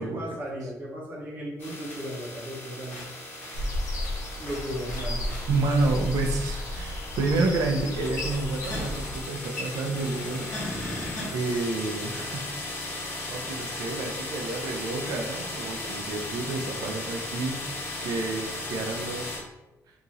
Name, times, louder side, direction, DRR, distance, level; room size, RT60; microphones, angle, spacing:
voice 1, 0.0-3.0 4.4-5.4, equal, 30° right, -5 dB, 0.9 m, -36 dB
sound 1, 1.6-19.4, left 2 dB, 30° left, 1.3 m, -36 dB
sound 2, 3.5-9.2, left 1 dB, 65° left, 0.7 m, -33 dB
voice 2, 5.5-10.6 11.3-12.4 12.7-17.6 18.0-19.4, right 3 dB, 80° right, 3 dB, 0.6 m, -29 dB
2.9 x 2.7 x 3.8 m, 0.96 s
cardioid pair, 175°, 6 cm